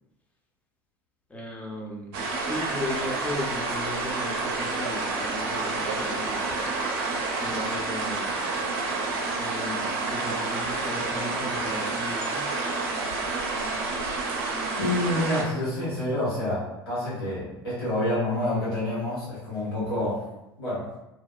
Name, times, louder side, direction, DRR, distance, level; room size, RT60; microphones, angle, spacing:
voice 1, 1.3-6.6 7.4-8.5 9.4-12.5, left 1 dB, 10° left, -1 dB, 0.5 m, -36 dB
sound 1, 2.1-15.4, right 3 dB, 65° right, 0.5 m, -29 dB
voice 2, 14.8-20.2 20.6-20.8, left 1 dB, 75° left, -10 dB, 1.5 m, -28 dB
2.7 x 2.0 x 2.3 m, 0.91 s
figure-of-eight pair, 70°, 13 cm